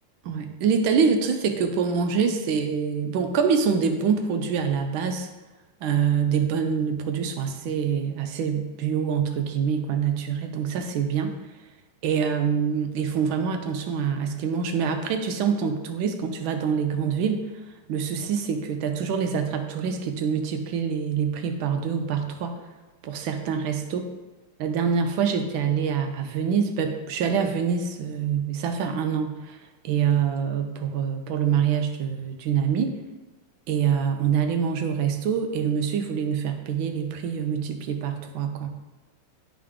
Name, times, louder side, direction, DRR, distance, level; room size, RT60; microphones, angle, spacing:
voice 1, 0.3-5.3 5.8-11.4 12.0-17.4 17.9-22.6 23.0-24.0 24.6-29.6 29.8-33.0 33.7-38.7, right 7 dB, 75° right, 5 dB, 1.3 m, -25 dB
10.5 x 3.7 x 3.6 m, 1.1 s
omnidirectional pair, 2.4 m